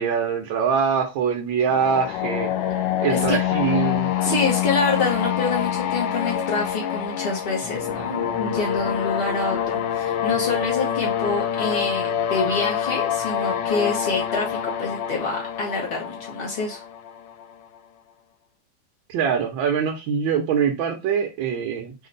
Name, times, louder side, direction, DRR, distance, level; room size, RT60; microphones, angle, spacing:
voice 1, 0.0-4.4 19.1-21.9, right 7 dB, 80° right, 1.5 m, -24 dB
sound 1, 1.7-17.5, left 10 dB, 75° left, 1.2 m, -26 dB
voice 2, 4.2-16.8, left 3 dB, 50° left, 0.7 m, -26 dB
5.0 x 2.1 x 3.8 m
omnidirectional pair, 2.1 m